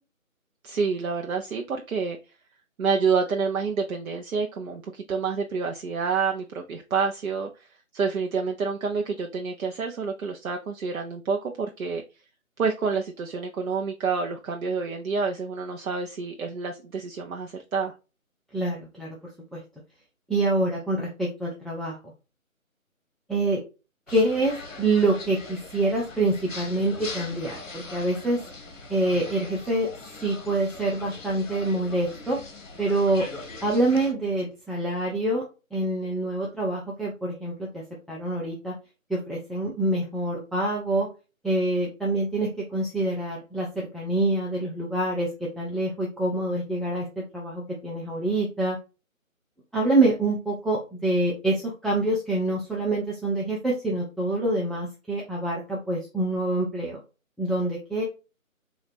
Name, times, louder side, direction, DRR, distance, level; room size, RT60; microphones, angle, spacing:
voice 1, 0.6-2.2 2.8-7.7 7.9-12.0 12.6-17.9, right 5 dB, 80° right, 2 dB, 0.6 m, -28 dB
voice 2, 18.5-19.2 19.5-19.6 20.3-21.9 23.3-23.6 24.1-28.4 28.9-29.9 30.2-32.4 32.8-33.2 33.6-35.4 35.7-38.7 39.1-41.1 41.4-48.8 49.7-57.0 57.4-58.0, right 2 dB, ahead, -5 dB, 0.3 m, -26 dB
sound 1, 24.1-34.1, left 3 dB, 65° left, 1.1 m, -41 dB
4.1 x 2.4 x 3.3 m, 0.31 s
figure-of-eight pair, 160°, 42 cm